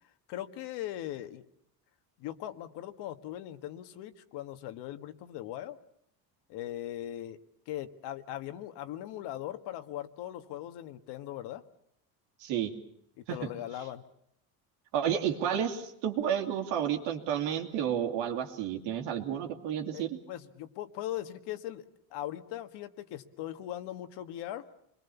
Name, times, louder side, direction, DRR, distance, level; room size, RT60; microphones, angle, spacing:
voice 1, 0.3-1.4 2.2-5.8 6.5-7.4 7.7-11.6 13.2-14.0 19.9-20.0 20.3-24.7, left 12 dB, 80° left, 8 dB, 1.8 m, -39 dB
voice 2, 12.4-12.7 13.3-13.4 14.9-20.2, right 9 dB, 85° right, 4 dB, 3.0 m, -31 dB
27.5 x 21.5 x 7.1 m, 0.73 s
cardioid pair, 115°, 40 cm